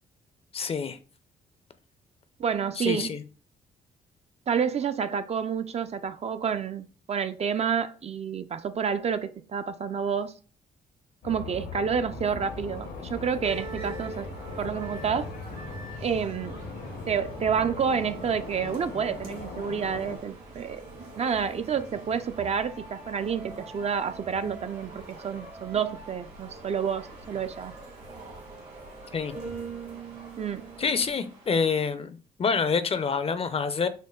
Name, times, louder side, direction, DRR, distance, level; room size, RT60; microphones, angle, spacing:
voice 1, 0.5-1.0 2.8-3.2 29.1-29.4 30.8-33.9, left 5 dB, 35° left, 0.5 m, -27 dB
voice 2, 2.4-3.2 4.5-10.4 11.2-14.3 14.6-15.3 16.0-16.6 17.1-20.8 21.2-27.7 30.4-30.6, right 7 dB, 40° right, 0.4 m, -29 dB
sound 1, 11.2-20.2, left 3 dB, 80° left, 0.9 m, -39 dB
sound 2, 12.4-31.9, right 3 dB, 90° right, 1.9 m, -55 dB
sound 3, 13.4-31.1, right 3 dB, 65° right, 1.8 m, -43 dB
6.3 x 2.1 x 2.3 m
cardioid pair, 70°, 17 cm